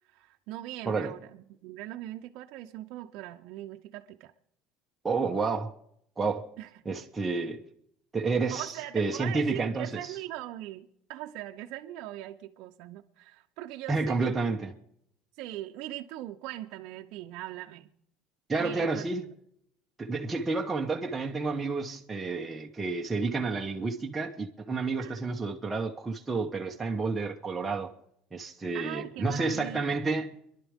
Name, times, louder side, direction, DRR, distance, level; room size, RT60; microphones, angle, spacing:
voice 1, 0.1-4.3 6.6-6.7 8.5-14.3 15.4-17.9 18.6-19.0 25.0-25.2 28.7-30.2, right 14 dB, 70° right, 0.7 m, -40 dB
voice 2, 5.0-5.7 6.2-6.5 6.8-7.6 8.1-10.1 13.9-14.7 18.5-19.3 20.0-27.9 28.3-30.3, right 3 dB, 15° right, 1.0 m, -30 dB
26.0 x 11.5 x 3.6 m
cardioid pair, 130°, 0 cm